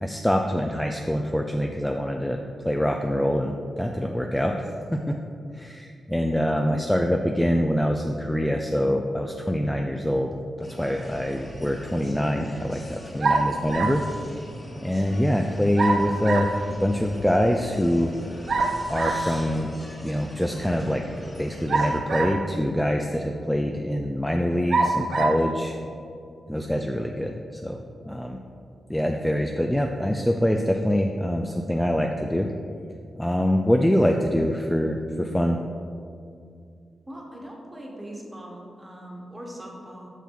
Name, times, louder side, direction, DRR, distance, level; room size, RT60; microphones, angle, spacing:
voice 1, 0.0-2.4 2.6-5.1 5.5-14.0 14.8-16.5 16.8-18.1 18.9-19.7 20.0-21.0 21.4-25.8 26.5-27.8 28.1-28.4 28.9-32.5 33.2-35.6, equal, 5° left, 3 dB, 0.4 m, -24 dB
voice 2, 6.5-6.8 37.1-40.1, equal, 15° right, -1 dB, 1.3 m, -41 dB
sound 1, 10.6-22.0, left 1 dB, 25° left, 1.2 m, -41 dB
sound 2, 13.2-14.1 15.8-16.6 18.5-19.3 21.7-22.5 23.3-23.4 24.7-25.4, right 3 dB, 60° right, 0.5 m, -24 dB
7.2 x 5.8 x 3.9 m, 2.4 s
wide cardioid pair, 100°, 0 cm